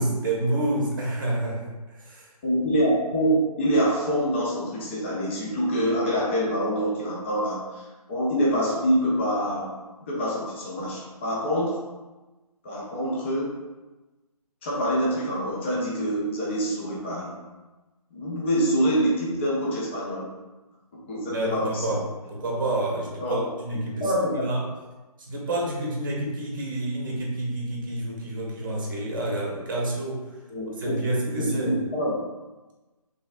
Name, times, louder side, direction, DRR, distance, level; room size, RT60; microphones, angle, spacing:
voice 1, 0.0-2.3 21.3-22.0 22.3-24.0 24.4-24.7 25.2-30.2 30.8-31.7, right 1 dB, 30° right, -2 dB, 1.0 m, -28 dB
voice 2, 2.4-7.8 8.1-9.7 10.1-11.8 12.6-13.5 14.6-17.3 18.1-20.3 20.9-22.0 23.2-23.5 24.0-24.5 30.5-30.9 31.3-32.2, equal, 20° left, -5 dB, 0.6 m, -25 dB
4.0 x 3.5 x 2.4 m, 1.1 s
figure-of-eight pair, 150°, 20 cm